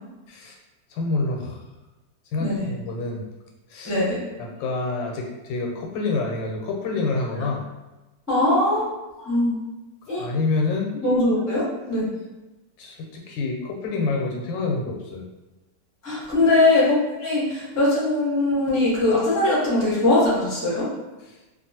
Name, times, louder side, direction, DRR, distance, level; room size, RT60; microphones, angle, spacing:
voice 1, 0.9-1.6 2.3-3.2 3.7-4.0 4.4-7.6 10.1-10.9 12.8-15.3 21.2-21.4, left 3 dB, 90° left, 0 dB, 1.4 m, -27 dB
voice 2, 3.8-4.2 8.3-8.9 9.2-9.6 10.1-10.3 11.0-12.1 16.0-20.9, left 2 dB, 15° left, -8 dB, 0.6 m, -21 dB
2.9 x 2.5 x 2.7 m, 1.1 s
omnidirectional pair, 2.0 m